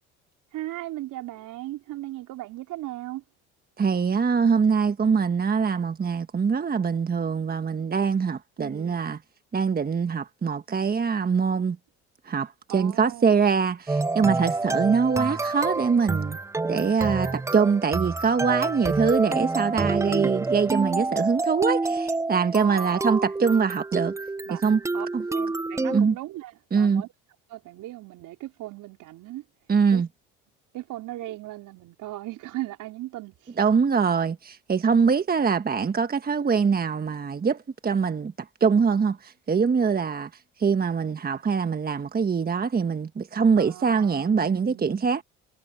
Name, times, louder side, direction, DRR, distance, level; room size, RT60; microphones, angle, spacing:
voice 1, 0.5-3.2 8.6-9.0 12.7-13.5 17.2-17.4 21.1-21.2 22.6-23.3 24.5-24.6 24.9-27.1 27.5-29.4 29.9-30.0 30.7-33.5 43.6-45.0, right 16 dB, 65° right, 4.3 m, -38 dB
voice 2, 3.8-9.2 9.5-11.8 12.2-16.4 16.7-24.2 24.6-24.8 25.1-25.2 25.9-26.2 26.7-27.0 29.7-30.1 33.6-40.3 40.6-45.2, right 5 dB, 25° right, 1.4 m, -23 dB
sound 1, 13.9-26.0, right 3 dB, 10° right, 0.5 m, -28 dB
hypercardioid pair, 75°, 34 cm